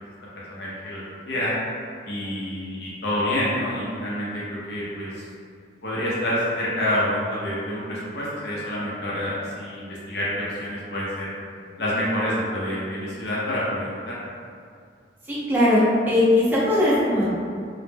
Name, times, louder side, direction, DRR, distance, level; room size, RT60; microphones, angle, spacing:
voice 1, 0.4-1.6 2.1-5.1 5.8-11.3 11.8-14.1, left 1 dB, 60° left, -7 dB, 0.5 m, -27 dB
voice 2, 15.3-17.3, left 1 dB, 10° right, -8 dB, 0.5 m, -19 dB
2.1 x 2.0 x 3.2 m, 2.3 s
head